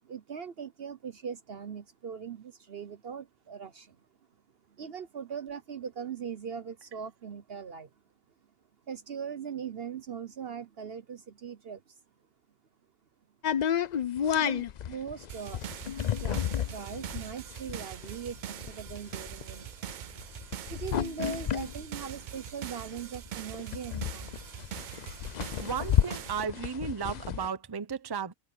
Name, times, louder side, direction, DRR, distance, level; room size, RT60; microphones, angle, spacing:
voice 1, 0.0-4.0 4.8-7.9 8.9-11.9 14.3-15.6 16.2-19.7 20.6-24.4, right 7 dB, 50° right, 0.9 m, -40 dB
sound 1, 13.4-22.9 23.3-23.4 23.5-27.5, left 9 dB, 90° left, 0.3 m, -31 dB
sound 2, 15.3-26.5, right 10 dB, 85° right, 0.4 m, -43 dB
voice 2, 25.6-28.3, right 6 dB, 20° right, 0.7 m, -34 dB
omnidirectional pair, 1.4 m